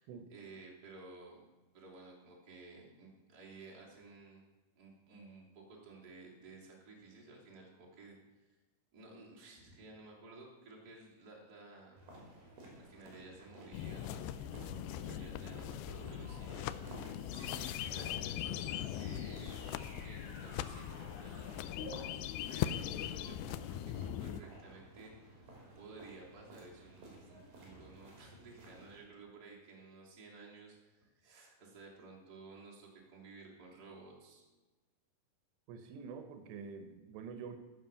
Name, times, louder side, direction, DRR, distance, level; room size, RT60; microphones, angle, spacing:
voice 1, 0.0-1.4 1.7-4.4 4.8-8.6 8.9-12.0 12.7-19.5 20.0-23.9 24.2-25.5 25.7-34.5, right 3 dB, 25° right, -4 dB, 3.0 m, -55 dB
sound 1, 12.0-29.0, right 1 dB, 55° right, 4.9 m, -55 dB
sound 2, 13.7-24.4, left 11 dB, 85° left, 2.1 m, -40 dB
sound 3, 18.4-24.1, left 3 dB, 70° left, 4.8 m, -53 dB
voice 2, 35.7-37.6, right 5 dB, 80° right, 8 dB, 3.1 m, -47 dB
15.0 x 6.2 x 6.9 m, 1.2 s
omnidirectional pair, 4.9 m